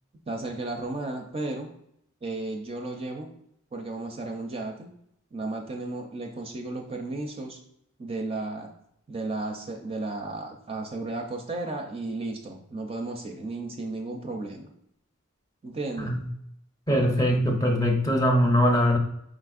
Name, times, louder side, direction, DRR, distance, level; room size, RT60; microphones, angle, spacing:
voice 1, 0.3-1.7 2.2-3.3 3.7-4.9 5.3-7.6 8.0-8.7 9.1-14.7 15.6-16.1, right 2 dB, 25° right, 2 dB, 0.4 m, -34 dB
voice 2, 16.9-19.0, equal, 15° left, 2 dB, 0.6 m, -22 dB
5.0 x 3.4 x 2.4 m, 0.74 s
head